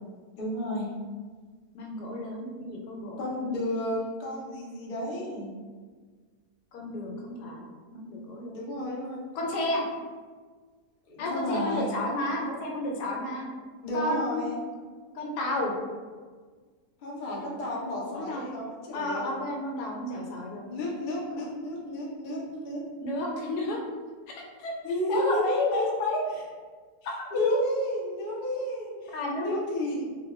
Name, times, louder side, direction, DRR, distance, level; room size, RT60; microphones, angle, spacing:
voice 1, 0.4-0.9 3.2-5.5 8.5-9.2 11.1-11.9 13.8-14.6 17.0-19.3 20.7-22.8 24.8-25.8 26.3-26.4 27.0-30.1, equal, 60° left, -4 dB, 0.5 m, -32 dB
voice 2, 1.7-3.2 6.7-8.7 9.3-9.8 11.2-13.5 13.9-14.5 15.1-15.7 18.1-18.5 18.9-20.6 21.4-21.5 23.0-23.8 24.3-24.7 25.1-26.2 27.3-27.6 29.1-29.5, left 2 dB, 80° left, -1 dB, 1.1 m, -31 dB
2.8 x 2.2 x 3.1 m, 1.5 s
omnidirectional pair, 1.7 m